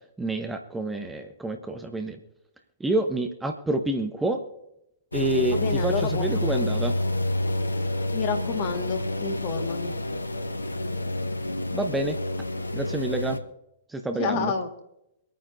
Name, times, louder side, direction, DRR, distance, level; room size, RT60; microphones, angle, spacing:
voice 1, 0.2-2.2 2.8-4.4 5.1-6.9 11.7-12.2 12.7-13.4 13.9-14.5, right 2 dB, 5° right, 5 dB, 1.0 m, -28 dB
sound 1, 5.1-13.4, left 1 dB, 80° left, 1.0 m, -28 dB
voice 2, 5.5-6.2 6.5-6.7 8.1-9.9 14.2-14.7, left 6 dB, 40° left, 5 dB, 1.8 m, -29 dB
25.0 x 9.2 x 2.7 m, 0.81 s
figure-of-eight pair, 110°, 0 cm